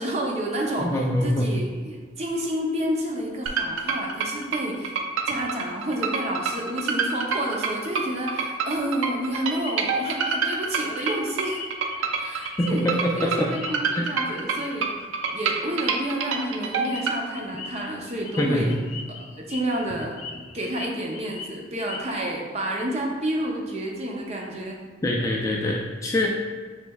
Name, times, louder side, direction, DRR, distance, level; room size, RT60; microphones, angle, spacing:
voice 1, 0.0-4.9 5.3-11.6 12.2-12.9 13.1-14.9 15.3-18.8 19.3-20.2 20.5-24.8, right 1 dB, 30° right, 0 dB, 0.6 m, -30 dB
voice 2, 0.8-1.5 12.6-13.5 13.9-14.1 18.4-18.7 25.0-26.3, left 1 dB, 15° left, -1 dB, 0.3 m, -24 dB
sound 1, 3.5-17.2, right 5 dB, 80° right, 0.5 m, -27 dB
sound 2, 9.6-13.1 13.5-14.1 14.5-14.7 15.0-15.3 15.8-22.3, left 4 dB, 85° left, 0.5 m, -40 dB
6.3 x 3.2 x 2.3 m, 1.5 s
head